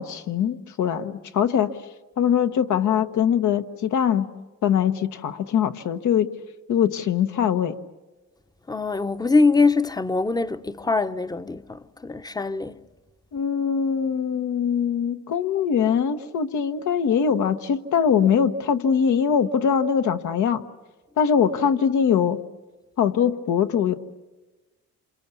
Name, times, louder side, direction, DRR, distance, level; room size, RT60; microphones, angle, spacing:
voice 1, 0.0-1.7 2.2-4.3 4.6-6.3 6.7-7.8 13.3-20.6 21.2-22.4 23.0-23.9, left 7 dB, 75° left, 1.4 m, -22 dB
voice 2, 8.7-12.8, left 3 dB, 15° left, 0.8 m, -23 dB
28.5 x 27.0 x 7.1 m
cardioid pair, 90°, 30 cm